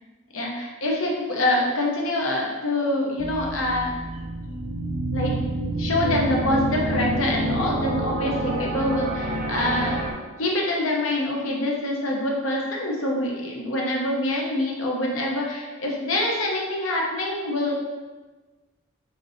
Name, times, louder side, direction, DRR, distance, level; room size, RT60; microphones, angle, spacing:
voice 1, 0.3-3.9 5.1-5.4 5.8-10.0 10.4-17.7, left 1 dB, 70° left, -1 dB, 0.8 m, -25 dB
sound 1, 3.2-10.1, right 1 dB, 40° right, 0.5 m, -28 dB
5.8 x 2.6 x 2.7 m, 1.3 s
head